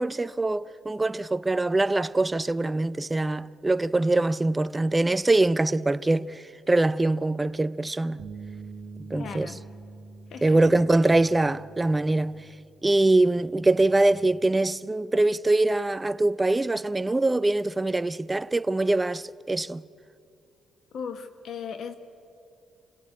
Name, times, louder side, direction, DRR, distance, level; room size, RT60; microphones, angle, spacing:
voice 1, 0.0-8.3 9.1-9.5 10.4-12.5 12.8-19.8, right 2 dB, 15° right, 0.5 m, -23 dB
sound 1, 8.2-14.4, right 4 dB, 75° right, 1.2 m, -46 dB
voice 2, 9.1-9.6 10.3-10.6 20.9-22.0, left 6 dB, 65° left, 1.3 m, -37 dB
27.0 x 17.0 x 8.5 m
cardioid pair, 90°, 0 cm